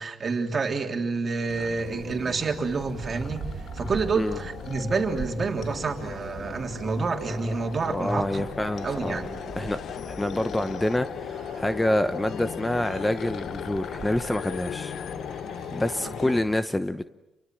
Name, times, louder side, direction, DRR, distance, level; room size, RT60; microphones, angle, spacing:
voice 1, 0.0-3.4 3.7-8.4 8.8-9.4 16.0-16.1, right 4 dB, 40° right, 3 dB, 3.3 m, -28 dB
sound 1, 1.5-16.4, left 8 dB, 65° left, 1.0 m, -38 dB
sound 2, 1.8-16.5, right 8 dB, 65° right, 1.6 m, -42 dB
voice 2, 7.9-9.3 9.6-9.8 10.1-14.9 15.7-17.1, left 1 dB, 10° left, 11 dB, 0.9 m, -27 dB
29.0 x 23.5 x 7.7 m, 0.97 s
cardioid pair, 90°, 0 cm